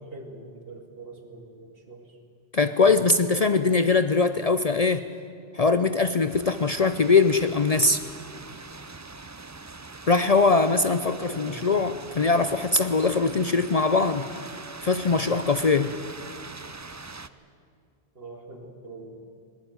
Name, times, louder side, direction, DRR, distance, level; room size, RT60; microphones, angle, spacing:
voice 1, 0.0-2.2 11.1-11.7 18.1-19.3, right 2 dB, 60° right, 4 dB, 2.6 m, -43 dB
voice 2, 2.5-5.0 5.5-8.0 10.1-14.3 14.8-15.9, left 4 dB, 45° left, 11 dB, 0.6 m, -22 dB
sound 1, 6.3-17.3, right 3 dB, 20° right, 0.5 m, -42 dB
20.0 x 19.5 x 9.3 m, 2.3 s
omnidirectional pair, 1.1 m